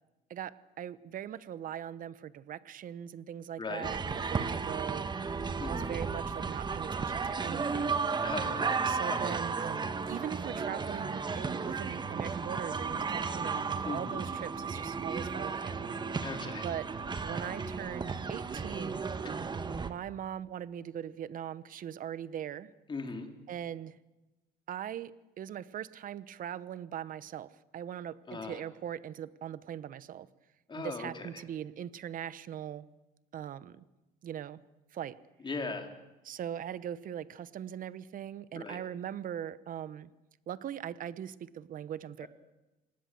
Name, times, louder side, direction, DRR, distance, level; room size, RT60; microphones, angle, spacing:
voice 1, 0.3-5.1 5.6-8.0 8.9-15.9 16.6-16.9 17.2-19.0 19.8-22.7 23.5-24.0 24.7-30.3 30.7-32.9 33.3-33.8 34.2-34.6 34.9-35.2 36.2-40.1 40.5-42.3, right 10 dB, 55° right, 16 dB, 1.0 m, -40 dB
voice 2, 3.6-3.9 5.6-5.9 8.2-8.6 9.1-9.3 13.8-14.2 16.2-16.6 22.9-23.3 28.3-28.6 30.7-31.4 35.4-35.9 38.5-38.8 42.2-42.3, left 4 dB, 30° left, 4 dB, 3.8 m, -38 dB
sound 1, 3.8-19.9, right 5 dB, 25° right, 1.4 m, -34 dB
27.0 x 19.0 x 7.8 m, 1.0 s
cardioid pair, 110°, 17 cm